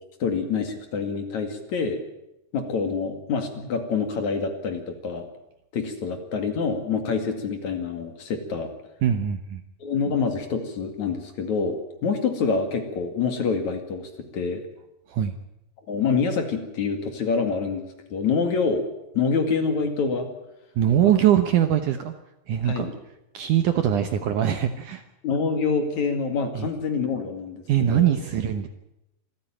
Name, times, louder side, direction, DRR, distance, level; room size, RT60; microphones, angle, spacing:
voice 1, 0.2-2.0 2.5-5.3 5.7-8.7 9.8-14.7 15.9-18.9 19.1-20.3 22.6-22.9 25.2-28.1, left 5 dB, 50° left, 6 dB, 3.2 m, -26 dB
voice 2, 9.0-9.6 15.1-15.3 20.8-22.1 22.5-22.9 23.3-25.0 26.6-26.7 27.7-28.7, right 10 dB, 70° right, 8 dB, 2.1 m, -22 dB
26.0 x 14.5 x 9.0 m, 0.88 s
omnidirectional pair, 4.6 m